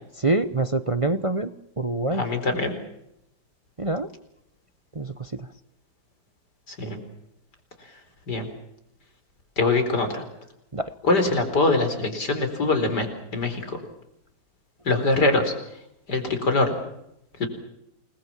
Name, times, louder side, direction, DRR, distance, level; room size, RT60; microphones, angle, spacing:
voice 1, 0.2-1.5 1.8-2.2 3.8-4.1 4.9-5.5 10.7-10.9, right 2 dB, 35° right, 12 dB, 0.5 m, -25 dB
voice 2, 2.1-2.7 6.7-7.0 8.3-8.5 9.6-10.2 11.0-13.8 14.8-15.5 16.1-16.7 17.4-17.5, left 2 dB, 55° left, 7 dB, 4.9 m, -23 dB
29.0 x 20.5 x 7.5 m, 0.82 s
omnidirectional pair, 2.1 m